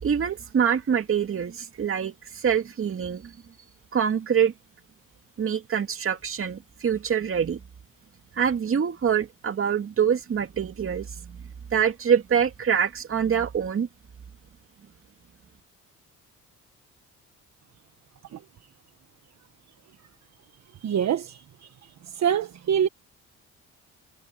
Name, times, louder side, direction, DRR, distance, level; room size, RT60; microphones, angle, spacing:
voice 1, 0.0-3.4 3.9-4.5 5.4-7.6 8.4-11.4 11.7-13.9, right 7 dB, 45° right, 2.4 m, -25 dB
voice 2, 20.8-21.4 22.1-22.9, right 9 dB, 60° right, 1.4 m, -24 dB
cardioid pair, 90°, 30 cm